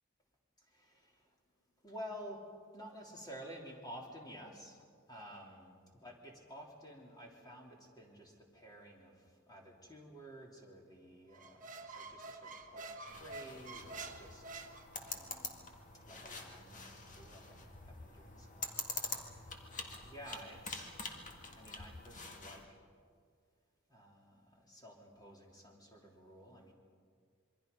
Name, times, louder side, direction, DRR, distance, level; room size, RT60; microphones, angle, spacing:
voice 1, 1.8-2.4 2.7-4.8 5.1-14.4 15.0-15.7 16.1-19.2 19.7-20.9 21.6-22.6 23.9-26.7, equal, 20° left, 0 dB, 3.3 m, -52 dB
Squeak, 11.3-15.4, right 3 dB, 40° right, 1.3 m, -48 dB
sound 1, 13.1-22.6, left 4 dB, 40° left, 1.9 m, -46 dB
27.0 x 23.0 x 5.4 m, 2.1 s
head